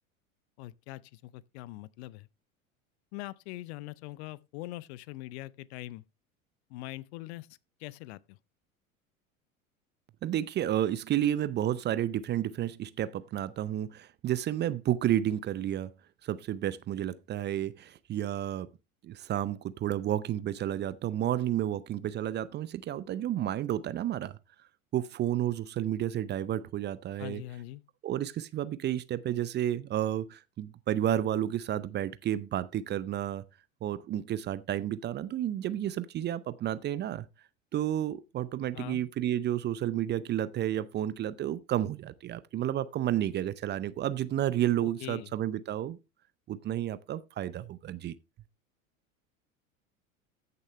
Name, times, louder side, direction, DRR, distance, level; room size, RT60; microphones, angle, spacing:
voice 1, 0.6-2.3 3.1-6.0 6.7-7.5 7.8-8.4 27.2-27.8 38.7-39.0 44.8-45.3, left 17 dB, 50° left, 0.7 m, -42 dB
voice 2, 10.2-15.9 16.2-18.7 19.0-24.4 24.9-27.4 28.0-33.4 33.8-37.2 37.7-46.0 46.5-48.1, right 12 dB, 25° right, 0.6 m, -31 dB
14.5 x 6.8 x 3.2 m
figure-of-eight pair, 80°, 41 cm